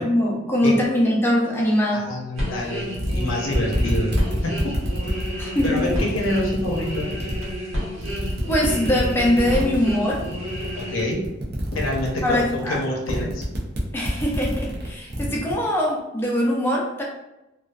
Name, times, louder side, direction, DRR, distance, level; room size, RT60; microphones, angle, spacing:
voice 1, 0.0-2.1 5.3-6.0 8.5-10.2 12.2-12.8 13.9-17.0, left 1 dB, 10° left, -3 dB, 0.5 m, -22 dB
voice 2, 1.9-4.1 4.4-4.8 5.6-7.1 10.7-11.2 11.7-13.5, left 1 dB, 85° left, -1 dB, 0.6 m, -26 dB
sound 1, 2.3-11.0, equal, 90° right, 1.1 m, -31 dB
sound 2, 2.6-2.7 2.9-7.6 8.0-15.5, equal, 55° right, 0.5 m, -28 dB
2.4 x 2.2 x 2.2 m, 0.95 s
head